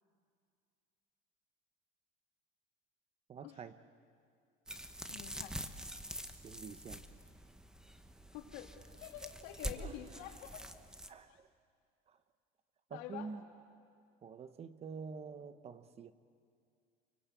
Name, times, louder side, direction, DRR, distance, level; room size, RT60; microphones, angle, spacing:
voice 1, 3.3-3.7 6.3-7.0 9.7-10.0 11.1-11.5 12.1-12.2 12.9-13.4 14.2-16.1, right 5 dB, 30° right, 12 dB, 1.0 m, -47 dB
sound 1, 4.7-11.1, right 1 dB, 5° right, 1.0 m, -46 dB
voice 2, 5.1-5.6 8.3-10.6 11.3-11.4 12.9-13.3, left 11 dB, 80° left, 2 dB, 3.1 m, -48 dB
29.0 x 23.5 x 8.4 m, 2.3 s
cardioid pair, 135°, 20 cm